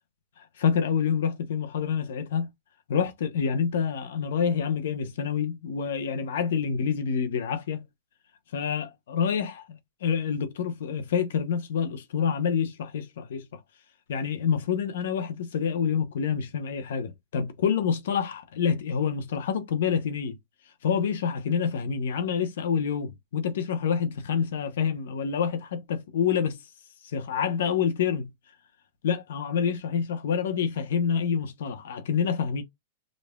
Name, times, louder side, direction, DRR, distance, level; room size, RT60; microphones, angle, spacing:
voice 1, 0.6-2.5 2.9-7.8 8.5-13.4 14.1-20.4 20.8-26.6 27.1-28.3 29.0-32.6, left 7 dB, 75° left, 0.9 m, -27 dB
5.2 x 2.6 x 2.2 m
hypercardioid pair, 140°, 0 cm